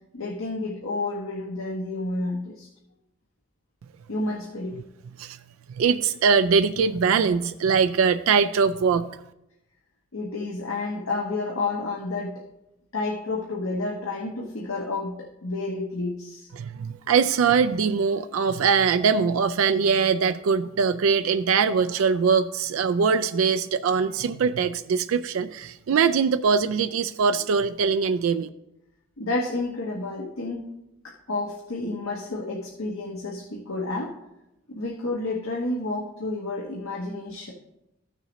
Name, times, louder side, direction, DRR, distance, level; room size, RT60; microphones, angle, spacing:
voice 1, 0.1-2.7 4.1-4.8 10.1-12.4 12.9-16.5 29.2-30.7 31.0-34.1 34.7-37.5, left 2 dB, 85° left, -2 dB, 1.2 m, -30 dB
voice 2, 5.8-9.1 16.5-28.5, right 6 dB, 80° right, 10 dB, 0.4 m, -22 dB
14.0 x 6.6 x 3.1 m, 0.89 s
head